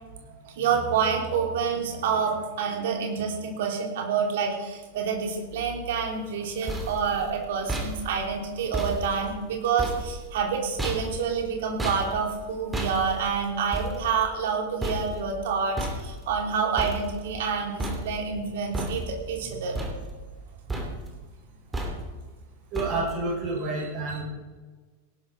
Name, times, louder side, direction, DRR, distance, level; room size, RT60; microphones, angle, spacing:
voice 1, 0.0-19.8, right 6 dB, 55° right, 1 dB, 3.3 m, -28 dB
sound 1, 6.3-17.5 17.8-18.4 18.7-19.4 19.7-20.4 20.7-21.2 21.7-22.3 22.7-23.3, right 1 dB, 10° right, 3.0 m, -34 dB
voice 2, 22.7-24.2, right 2 dB, 40° right, -3 dB, 5.9 m, -29 dB
18.0 x 11.5 x 4.4 m, 1.3 s
figure-of-eight pair, 90°, 0 cm